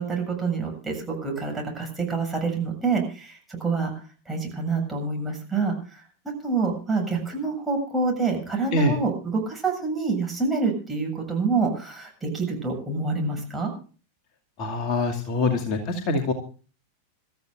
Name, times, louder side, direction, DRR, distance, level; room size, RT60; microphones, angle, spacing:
voice 1, 0.0-6.0 6.4-13.7, right 4 dB, 10° right, 1 dB, 7.5 m, -27 dB
voice 2, 14.6-16.3, left 2 dB, 35° left, 3 dB, 2.4 m, -24 dB
27.5 x 14.0 x 2.5 m, 0.38 s
figure-of-eight pair, 90°, 0 cm